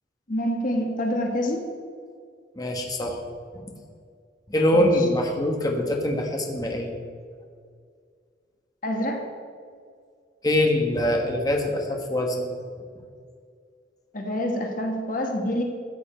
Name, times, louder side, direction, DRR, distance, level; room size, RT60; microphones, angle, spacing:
voice 1, 0.3-1.6 4.7-4.9 8.8-9.2 14.1-15.6, equal, 50° left, 2 dB, 1.4 m, -26 dB
voice 2, 2.6-3.2 3.5-3.6 4.5-7.0 10.4-12.5, left 1 dB, 20° left, 1 dB, 1.2 m, -23 dB
14.0 x 8.2 x 4.4 m, 2.1 s
head